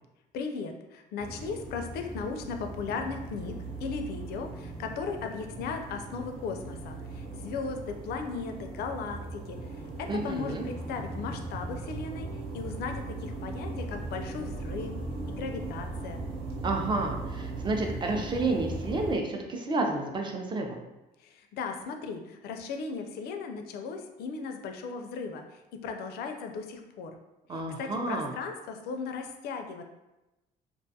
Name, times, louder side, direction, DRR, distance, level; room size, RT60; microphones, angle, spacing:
voice 1, 0.3-9.6 10.0-12.3 12.5-14.9 15.3-16.2 21.2-27.2 27.8-29.8, left 5 dB, 70° left, 5 dB, 0.4 m, -37 dB
sound 1, 1.2-19.2, right 2 dB, 70° right, 0.7 m, -38 dB
voice 2, 10.1-10.6 16.6-20.8 27.5-28.3, right 2 dB, 30° right, 2 dB, 0.4 m, -30 dB
2.5 x 2.3 x 2.7 m, 0.99 s
cardioid pair, 110°, 17 cm